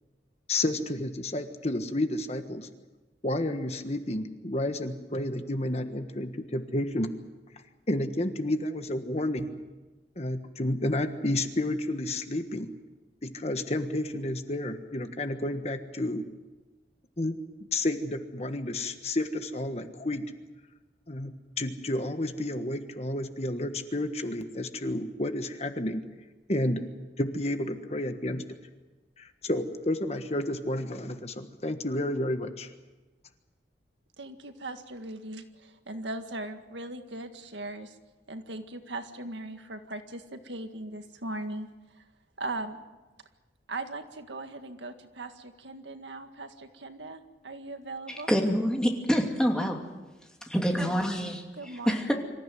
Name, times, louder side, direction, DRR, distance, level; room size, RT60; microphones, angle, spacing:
voice 1, 0.5-2.7 3.2-7.1 7.9-9.6 10.2-12.7 13.2-16.2 17.2-17.4 17.7-20.3 21.1-26.0 26.5-26.8 27.2-28.4 29.2-32.7, left 1 dB, 35° left, 8 dB, 1.4 m, -31 dB
voice 2, 34.2-38.0 38.3-41.7 41.9-42.0 42.4-42.8 43.7-48.3 51.5-52.1, right 2 dB, 90° right, 7 dB, 1.9 m, -39 dB
voice 3, 48.1-49.8 50.5-51.4 51.9-52.1, equal, 5° left, 1 dB, 2.7 m, -26 dB
25.5 x 14.5 x 9.4 m, 1.2 s
head